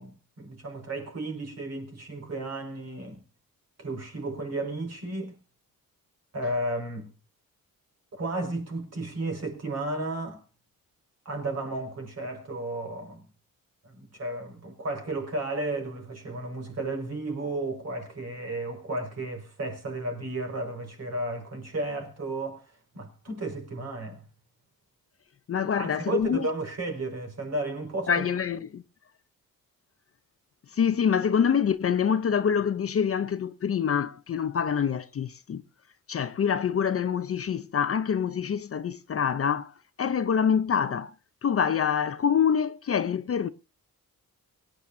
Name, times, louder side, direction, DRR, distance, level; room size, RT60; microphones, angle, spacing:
voice 1, 0.0-3.2 3.8-5.4 6.3-7.1 8.1-10.4 11.3-13.2 13.8-24.2 25.8-28.3, right 2 dB, 45° right, 5.6 m, -33 dB
voice 2, 25.5-26.5 28.1-28.8 30.7-35.6 36.1-39.7 40.0-41.1 41.4-43.5, left 7 dB, 40° left, 0.8 m, -26 dB
24.0 x 10.0 x 2.7 m
wide cardioid pair, 175°, 35 cm